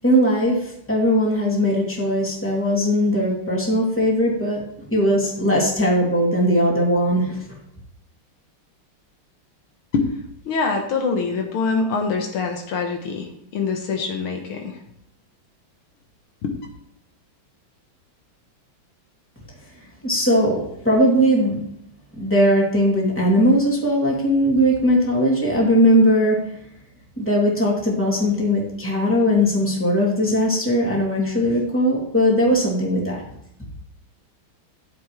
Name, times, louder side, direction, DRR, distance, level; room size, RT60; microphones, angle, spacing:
voice 1, 0.0-7.5 20.0-21.6 22.2-26.4 27.2-33.2, equal, 5° left, -4 dB, 2.6 m, -19 dB
voice 2, 10.5-13.3 13.5-14.8 16.4-16.5, left 4 dB, 75° left, 3 dB, 2.1 m, -24 dB
13.0 x 7.7 x 3.2 m, 0.75 s
omnidirectional pair, 2.4 m